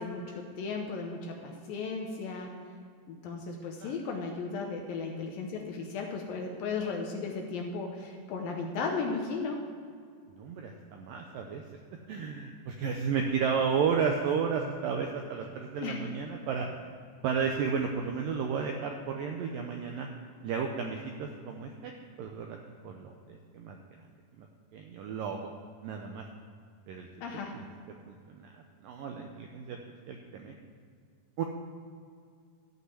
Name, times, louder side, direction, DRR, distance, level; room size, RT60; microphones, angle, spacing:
voice 1, 0.0-2.5 3.1-9.7 15.8-16.0 27.2-27.6, left 4 dB, 75° left, 2 dB, 2.3 m, -35 dB
voice 2, 10.3-11.6 12.1-16.7 17.2-20.1 20.4-21.9 22.2-22.6 22.8-23.8 24.4-24.5 24.7-25.5 25.8-26.2 26.9-27.1 27.5-27.7 28.1-28.6 28.8-29.8 30.1-30.6 31.4-31.5, right 6 dB, 85° right, 2 dB, 2.0 m, -33 dB
14.0 x 5.6 x 8.1 m, 2.2 s
omnidirectional pair, 4.9 m